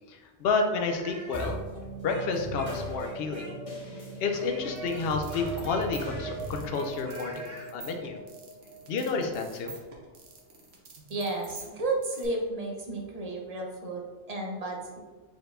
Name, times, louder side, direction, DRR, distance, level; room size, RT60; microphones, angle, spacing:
voice 1, 0.1-1.6 2.0-3.5 4.2-8.2 8.9-9.7, left 4 dB, 60° left, 4 dB, 0.8 m, -30 dB
Speech, 0.9-3.8 4.4-7.7, right 1 dB, 85° right, 1.6 m, -46 dB
sound 1, 1.3-10.0, right 2 dB, 30° left, 0.9 m, -39 dB
sound 2, 4.8-12.3, right 4 dB, 60° right, 1.1 m, -48 dB
voice 2, 11.1-15.0, right 2 dB, 35° right, 0 dB, 0.8 m, -32 dB
4.7 x 4.3 x 2.6 m, 1.4 s
omnidirectional pair, 1.3 m